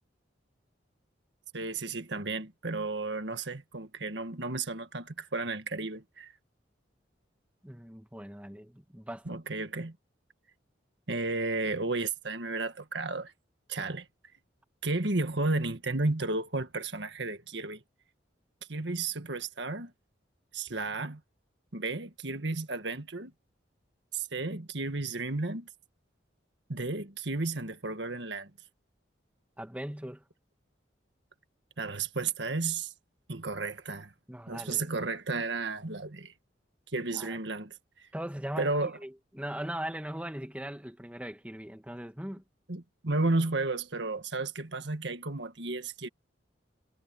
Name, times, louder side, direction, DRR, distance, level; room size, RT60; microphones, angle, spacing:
voice 1, 1.5-6.3 9.3-10.0 11.1-13.3 13.7-14.1 14.8-17.8 18.7-19.9 20.5-21.2 21.7-23.3 24.1-25.7 26.7-28.5 31.8-32.9 33.3-34.1 34.5-36.3 36.9-38.1 38.6-39.0 42.7-46.1, right 3 dB, 65° right, 1.8 m, -33 dB
voice 2, 7.6-9.4 29.6-30.2 34.3-34.8 37.1-37.4 38.1-42.4, right 1 dB, 5° right, 1.4 m, -40 dB
head